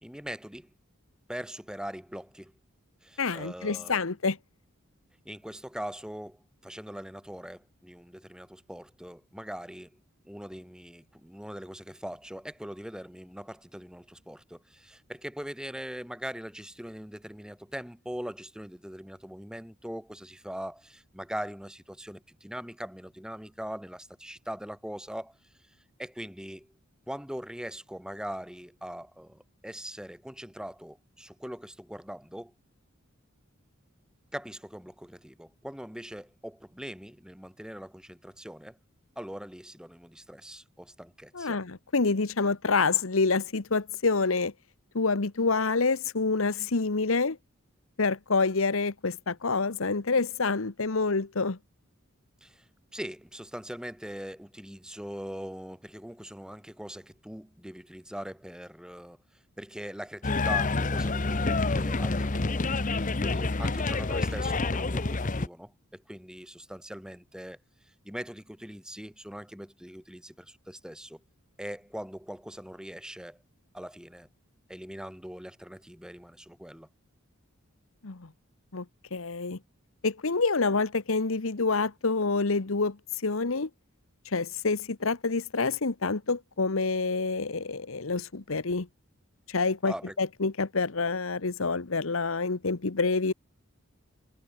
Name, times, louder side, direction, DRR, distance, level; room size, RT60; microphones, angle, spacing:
voice 1, 0.0-0.7 1.3-2.5 3.0-4.0 5.3-9.9 10.3-25.4 25.7-26.7 27.1-32.5 34.3-38.8 39.2-41.6 52.4-52.7 52.9-59.2 59.6-67.6 67.8-71.2 71.6-73.4 73.7-74.3 74.7-76.9 89.8-90.2, equal, 5° right, 2.0 m, -41 dB
voice 2, 3.2-4.4 41.3-44.5 44.9-47.4 48.0-51.6 78.0-78.3 78.7-78.8 79.1-79.6 80.0-83.0 83.2-83.7 84.3-88.9 89.5-93.3, left 4 dB, 70° left, 1.1 m, -27 dB
sound 1, 60.2-65.5, left 3 dB, 35° left, 0.9 m, -28 dB
head